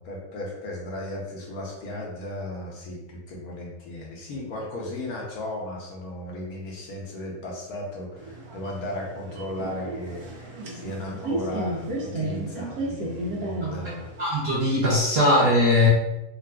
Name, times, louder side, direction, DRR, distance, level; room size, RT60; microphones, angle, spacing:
voice 1, 0.0-14.1, left 1 dB, 70° left, -2 dB, 1.1 m, -35 dB
sound 1, 8.2-14.2, right 2 dB, 70° right, 1.1 m, -33 dB
voice 2, 14.2-15.9, left 1 dB, 55° right, -7 dB, 0.7 m, -20 dB
3.8 x 2.4 x 2.2 m, 0.96 s
omnidirectional pair, 1.7 m